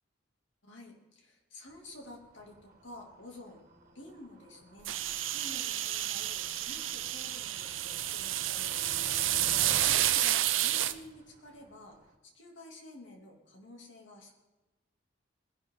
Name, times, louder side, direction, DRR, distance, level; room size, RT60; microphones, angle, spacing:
voice 1, 0.6-3.6 3.9-12.0 12.2-14.3, left 1 dB, 70° left, 1 dB, 2.8 m, -51 dB
Motor vehicle (road), 1.7-12.1, right 1 dB, 45° right, 2.1 m, -50 dB
sound 1, 4.8-10.9, right 13 dB, 85° right, 0.7 m, -30 dB
20.5 x 11.0 x 3.9 m, 1.1 s
head